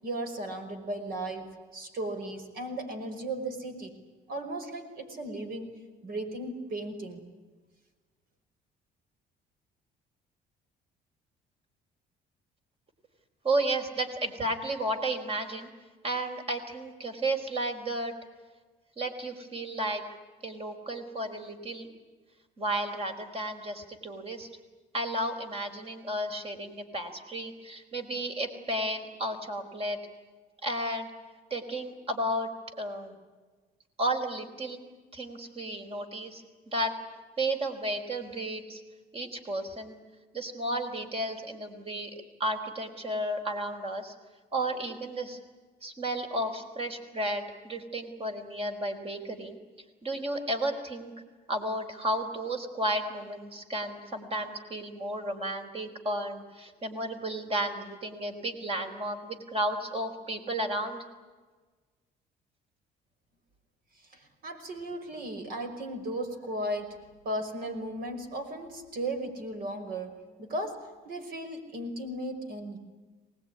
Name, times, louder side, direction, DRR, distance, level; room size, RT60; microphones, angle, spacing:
voice 1, 0.0-3.9 4.3-5.8 6.0-7.2 64.1-72.8, right 1 dB, 60° right, 7 dB, 5.6 m, -36 dB
voice 2, 13.4-15.7 16.0-18.1 19.0-20.0 20.4-21.9 22.6-24.5 24.9-30.0 30.6-31.1 31.5-32.5 32.8-33.1 34.0-34.8 35.1-36.9 37.4-38.8 39.1-40.0 40.3-42.1 42.4-44.1 44.5-45.4 45.8-49.6 50.0-51.1 51.5-61.0, right 1 dB, 35° right, 6 dB, 4.8 m, -33 dB
24.0 x 20.0 x 10.0 m, 1.3 s
cardioid pair, 110°, 17 cm